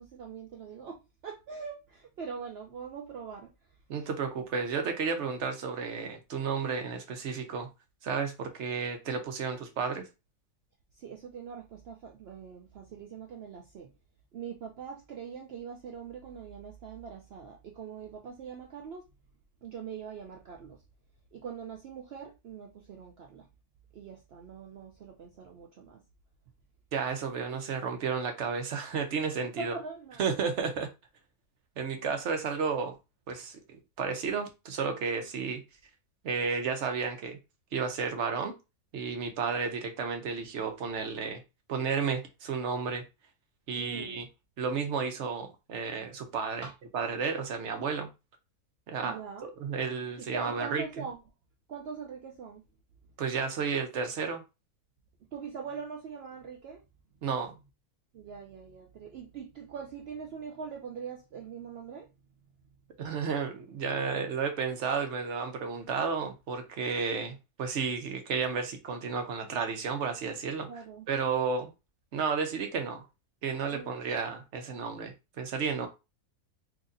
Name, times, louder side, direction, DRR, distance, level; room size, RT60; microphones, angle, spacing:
voice 1, 0.0-3.5 11.0-13.9 14.3-19.1 19.6-20.8 21.3-23.5 23.9-26.0 29.6-30.2 43.7-44.2 46.6-46.7 49.0-49.5 50.2-51.2 51.7-52.6 55.3-56.8 58.1-62.1 70.7-71.1 73.7-74.0, right 6 dB, 75° right, 0.5 m, -42 dB
voice 2, 3.9-7.7 8.0-10.1 26.9-29.8 30.2-30.9 31.8-33.0 33.3-35.6 36.2-37.4 37.7-38.5 38.9-41.4 41.7-43.0 43.7-44.3 44.6-46.7 46.9-48.1 48.9-50.8 53.2-54.4 57.2-57.6 63.0-70.7 71.1-71.7 72.1-73.1 73.4-75.9, right 5 dB, 55° right, 0.9 m, -32 dB
3.9 x 2.8 x 2.5 m
omnidirectional pair, 1.7 m